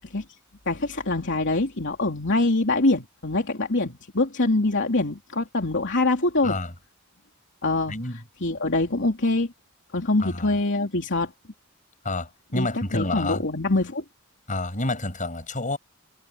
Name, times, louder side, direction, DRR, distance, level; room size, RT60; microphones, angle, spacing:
voice 1, 0.7-6.6 7.6-8.0 8.4-9.5 9.9-11.3 12.5-12.7 12.9-14.0, left 2 dB, 60° left, 3.1 m, -24 dB
voice 2, 6.4-6.7 7.9-8.2 10.2-10.5 12.0-13.4 14.5-15.8, left 2 dB, 35° left, 7.0 m, -29 dB
head